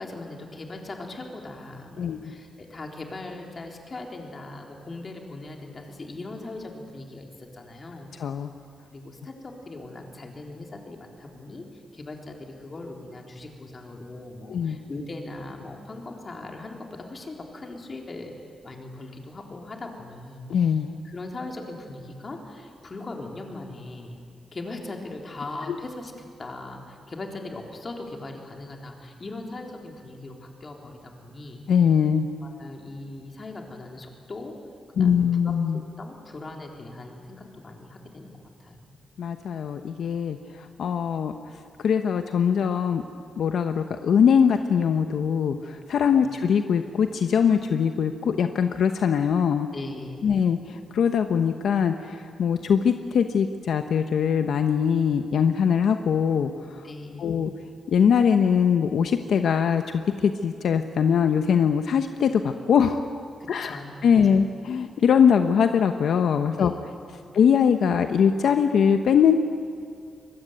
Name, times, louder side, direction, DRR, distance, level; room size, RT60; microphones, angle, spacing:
voice 1, 0.0-8.1 8.9-18.3 18.6-20.7 21.0-24.2 24.5-31.6 32.4-34.6 35.0-35.5 36.0-38.3 38.6-38.9 46.2-46.3 49.7-50.3 56.8-57.5 63.4-64.4 66.5-66.8 67.1-67.4, left 2 dB, 35° left, 2 dB, 3.8 m, -39 dB
voice 2, 2.0-2.3 8.2-8.5 14.5-14.8 20.5-20.9 31.7-32.3 35.0-35.8 39.2-41.3 41.8-43.0 43.4-49.7 50.2-56.9 57.2-57.5 57.9-63.0 63.5-66.7 67.3-69.4, left 7 dB, 75° left, 7 dB, 1.0 m, -22 dB
24.5 x 21.0 x 9.3 m, 2.3 s
cardioid pair, 115°, 0 cm